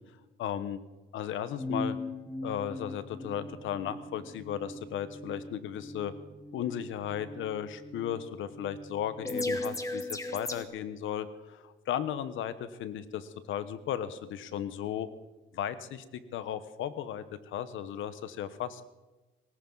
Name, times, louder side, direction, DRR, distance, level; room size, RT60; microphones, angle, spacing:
voice 1, 0.4-0.8 1.1-2.0 2.4-6.1 6.5-15.1 15.5-16.0 16.3-18.8, left 10 dB, 80° left, 13 dB, 1.1 m, -35 dB
sound 1, 1.6-10.6, left 2 dB, 15° left, 1.4 m, -39 dB
19.0 x 18.0 x 4.0 m, 1.1 s
cardioid pair, 90°, 20 cm